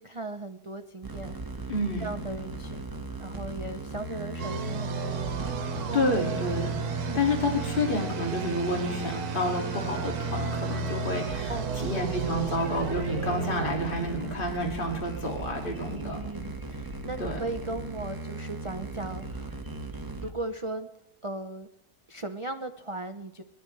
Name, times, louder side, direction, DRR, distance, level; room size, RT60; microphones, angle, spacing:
voice 1, 0.0-1.7 2.0-2.8 3.2-6.1 7.0-7.2 11.5-11.9 15.9-19.5 20.2-20.9 21.2-21.7 22.1-23.4, right 2 dB, 45° right, 6 dB, 0.4 m, -38 dB
sound 1, 1.0-20.3, right 2 dB, 15° right, 0.9 m, -38 dB
voice 2, 1.7-2.1 5.9-6.8 7.1-16.2 17.2-17.4, left 1 dB, 35° left, 0 dB, 2.5 m, -29 dB
sound 2, 4.4-15.0, right 5 dB, 80° right, 1.6 m, -34 dB
21.5 x 13.5 x 3.2 m, 0.78 s
omnidirectional pair, 1.6 m